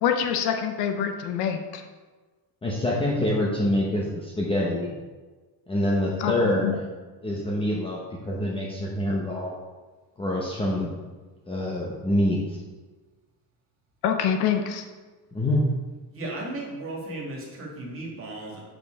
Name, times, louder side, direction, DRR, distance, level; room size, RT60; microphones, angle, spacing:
voice 1, 0.0-1.8 6.2-6.8 14.0-14.8, left 8 dB, 75° left, 6 dB, 0.9 m, -25 dB
voice 2, 2.6-4.9 5.7-6.8 7.2-9.6 10.2-10.9 11.5-12.6 15.3-15.6, left 1 dB, 15° left, -3 dB, 0.8 m, -26 dB
voice 3, 16.1-18.6, right 2 dB, 35° right, -2 dB, 2.3 m, -35 dB
7.6 x 5.3 x 4.8 m, 1.3 s
cardioid pair, 150°, 39 cm